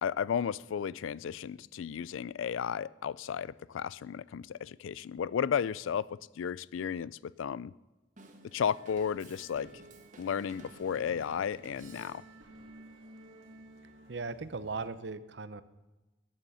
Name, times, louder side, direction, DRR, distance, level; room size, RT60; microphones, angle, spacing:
voice 1, 0.0-7.7 8.4-9.8 10.2-12.2, left 7 dB, 80° left, 21 dB, 0.3 m, -34 dB
Drum kit / Drum, 8.2-12.5, right 2 dB, 40° right, 1.3 m, -54 dB
sound 1, 8.4-14.9, right 1 dB, 75° right, 1.8 m, -55 dB
voice 2, 14.1-15.6, right 4 dB, 60° right, 13 dB, 0.7 m, -38 dB
13.5 x 8.9 x 5.6 m, 1.1 s
head